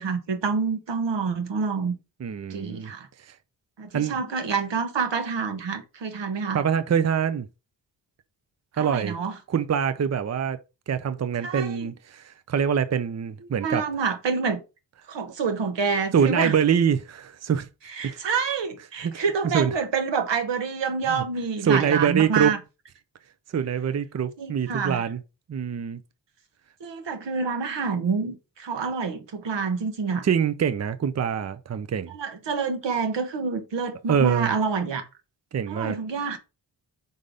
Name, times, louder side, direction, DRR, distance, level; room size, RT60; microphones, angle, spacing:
voice 1, 0.0-1.9 2.5-3.1 3.8-6.6 8.8-9.4 11.4-11.8 13.6-14.6 15.1-16.5 17.9-22.6 24.4-25.0 26.8-30.3 32.1-35.1 35.7-36.4, right 5 dB, 70° right, 1.3 m, -27 dB
voice 2, 2.2-2.9 3.2-3.4 3.9-4.2 6.5-7.5 8.8-9.2 9.5-10.6 10.9-13.9 16.1-17.7 18.0-18.2 19.0-19.7 21.1-21.2 21.6-22.6 23.5-25.2 25.5-26.0 30.2-32.1 34.1-34.5 35.5-36.0, right 7 dB, 35° right, 0.6 m, -24 dB
5.4 x 3.8 x 4.9 m
cardioid pair, 55°, 44 cm